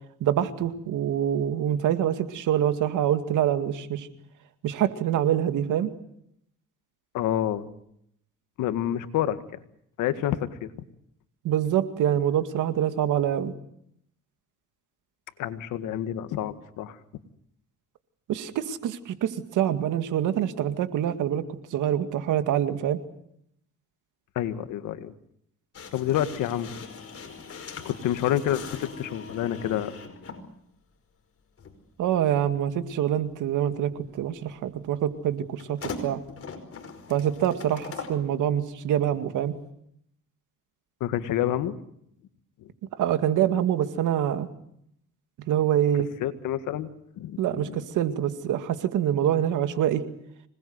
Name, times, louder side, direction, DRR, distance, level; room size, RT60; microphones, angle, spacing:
voice 1, 0.2-4.1 4.6-5.9 11.4-13.5 18.3-21.4 21.7-23.0 32.0-36.2 37.1-39.6 43.0-44.5 45.5-46.1 47.4-50.0, right 10 dB, 85° right, 9 dB, 2.2 m, -25 dB
voice 2, 7.1-7.7 8.6-9.4 10.0-10.7 15.4-17.0 24.4-25.1 25.9-26.9 27.5-29.9 41.0-41.8 42.6-42.7 46.2-46.9 47.2-47.9, left 11 dB, 90° left, 11 dB, 1.8 m, -28 dB
sound 1, 25.7-30.5 31.6-31.7 35.6-38.2, left 4 dB, 50° left, 5.2 m, -40 dB
26.0 x 20.0 x 8.0 m, 0.73 s
cardioid pair, 90°, 30 cm